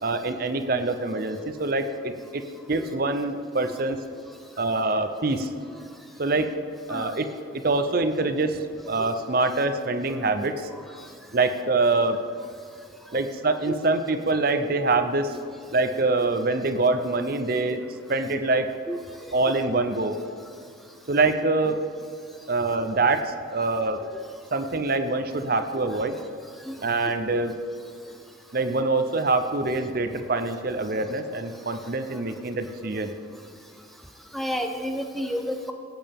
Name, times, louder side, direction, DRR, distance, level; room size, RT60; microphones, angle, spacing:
voice 1, 0.0-2.4 2.7-4.0 4.6-5.5 6.2-6.5 6.9-7.3 7.6-10.7 11.3-12.2 13.1-15.4 15.7-17.8 18.1-18.7 19.3-20.2 21.1-21.8 22.5-24.0 24.5-26.2 26.8-27.5 28.5-33.1, right 3 dB, 45° right, 9 dB, 0.6 m, -25 dB
voice 2, 18.9-19.5 26.6-26.8 32.1-32.2 34.3-35.7, equal, ahead, 4 dB, 0.5 m, -32 dB
17.0 x 8.8 x 3.6 m, 2.5 s
head